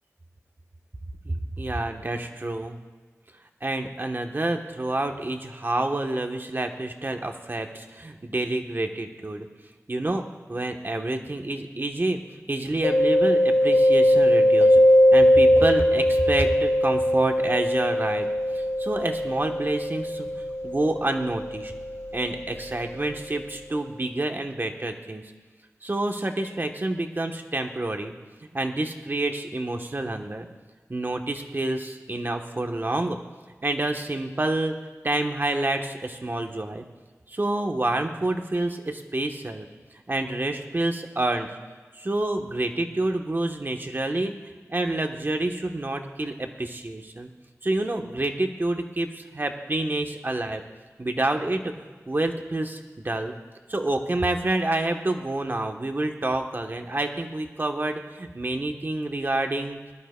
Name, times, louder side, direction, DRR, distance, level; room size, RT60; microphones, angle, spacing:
voice 1, 1.2-2.8 3.6-9.5 9.9-10.2 10.5-14.8 15.1-18.3 18.5-20.3 20.6-21.7 22.1-25.2 25.8-28.1 28.5-30.5 30.9-33.2 33.6-34.7 35.0-36.8 37.3-39.7 40.1-41.5 41.9-44.3 44.7-47.3 47.6-50.6 51.0-51.7 52.1-52.8 53.0-53.3 53.7-59.8, right 2 dB, 40° right, 4 dB, 1.0 m, -28 dB
Mallet percussion, 12.8-22.4, equal, 50° left, 1.0 m, -20 dB
21.5 x 12.0 x 2.3 m, 1.4 s
wide cardioid pair, 70°, 6 cm